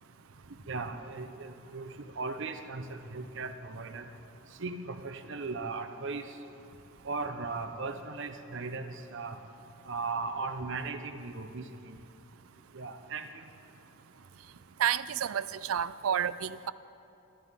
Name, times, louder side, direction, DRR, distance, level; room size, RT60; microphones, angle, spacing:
voice 1, 0.7-4.0 4.6-6.2 7.0-9.4 9.9-11.9 12.7-13.4, right 3 dB, 60° right, 7 dB, 1.0 m, -37 dB
voice 2, 14.8-16.7, right 9 dB, 85° right, 16 dB, 0.4 m, -30 dB
23.0 x 14.5 x 3.7 m, 2.9 s
head